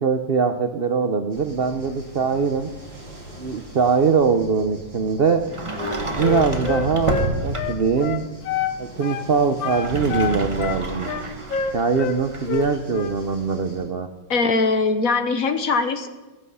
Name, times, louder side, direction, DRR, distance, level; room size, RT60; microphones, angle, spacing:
voice 1, 0.0-2.7 3.4-5.4 6.1-8.3 8.8-11.1 11.7-14.1, right 5 dB, 60° right, 7 dB, 0.6 m, -22 dB
sound 1, 1.3-13.8, right 1 dB, 80° right, 8.1 m, -43 dB
Sliding door, 5.5-8.0 9.6-12.8, right 2 dB, 20° right, 1.2 m, -29 dB
Wind instrument woodwind instrument, 5.8-8.8 9.0-9.3 9.6-12.2 12.5-13.2, left 8 dB, 85° left, 1.7 m, -27 dB
voice 2, 14.3-16.1, left 4 dB, 55° left, 8 dB, 1.3 m, -21 dB
15.0 x 15.0 x 5.6 m, 1.2 s
omnidirectional pair, 2.0 m